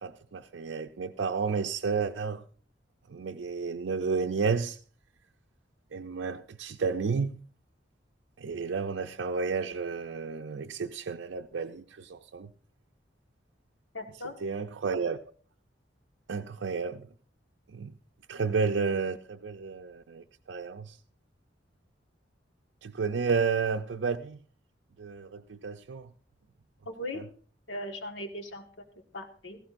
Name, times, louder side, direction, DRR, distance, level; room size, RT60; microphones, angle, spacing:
voice 1, 0.0-2.4 3.1-4.8 5.9-7.4 8.4-12.5 14.4-15.2 16.3-17.0 17.7-17.9 18.3-21.0 22.8-24.4 25.0-26.1 27.1-27.2, right 5 dB, 80° right, 0.5 m, -31 dB
voice 2, 13.9-14.3 26.8-27.2 27.7-28.7 29.1-29.6, left 1 dB, 85° left, 1.5 m, -38 dB
16.0 x 15.0 x 2.5 m
head